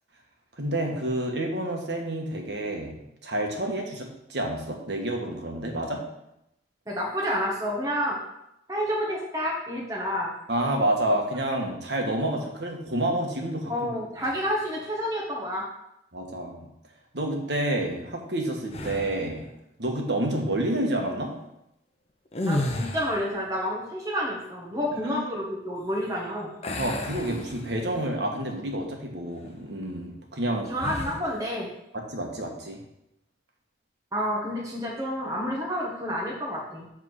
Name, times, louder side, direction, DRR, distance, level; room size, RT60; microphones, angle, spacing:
voice 1, 0.6-2.9 3.2-6.0 10.5-13.7 16.1-16.7 17.1-19.5 19.8-21.3 25.0-25.2 26.8-30.7 31.0-31.1 31.9-32.8, right 1 dB, 70° right, 1 dB, 1.3 m, -29 dB
voice 2, 6.9-8.2 8.7-10.3 13.7-15.6 22.4-26.5 30.7-31.7 34.1-36.9, equal, 20° right, -4 dB, 1.3 m, -29 dB
sound 1, 18.7-19.3 22.3-23.4 26.6-28.1 28.5-28.7 30.8-31.3, left 1 dB, 35° left, 0.7 m, -32 dB
7.4 x 3.6 x 6.3 m, 0.83 s
head